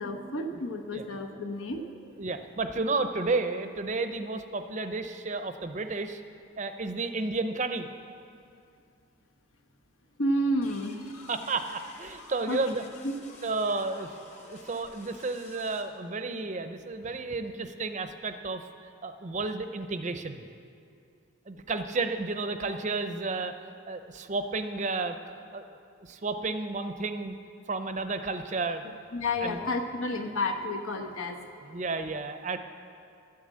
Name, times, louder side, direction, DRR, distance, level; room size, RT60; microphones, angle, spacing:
voice 1, 0.0-1.8 10.2-11.2 12.5-12.6 13.0-13.1 29.1-31.4, left 1 dB, 80° left, 4 dB, 1.1 m, -30 dB
voice 2, 2.2-6.2 6.6-7.9 11.3-12.8 13.4-14.1 14.4-18.6 19.0-20.4 21.5-23.5 23.9-25.2 25.5-25.7 26.0-27.4 27.7-28.8 29.4-29.6 31.5-32.6, right 3 dB, 35° right, 8 dB, 0.6 m, -32 dB
sound 1, 10.6-15.8, left 2 dB, 35° left, 1.3 m, -51 dB
12.5 x 8.5 x 7.6 m, 2.4 s
head